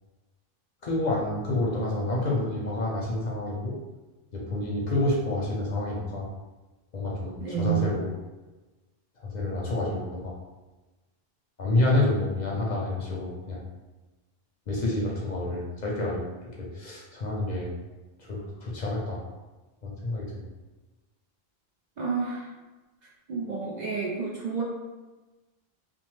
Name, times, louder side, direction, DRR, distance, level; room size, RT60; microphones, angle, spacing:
voice 1, 0.8-3.7 4.3-6.3 6.9-8.1 9.2-10.3 11.6-13.6 14.7-16.3 16.6-17.7 18.2-19.2 19.8-20.5, left 2 dB, 55° left, -4 dB, 0.6 m, -28 dB
voice 2, 7.4-8.0 22.0-22.5 23.3-24.6, right 6 dB, 55° right, -4 dB, 0.5 m, -29 dB
3.0 x 2.0 x 3.1 m, 1.2 s
omnidirectional pair, 1.0 m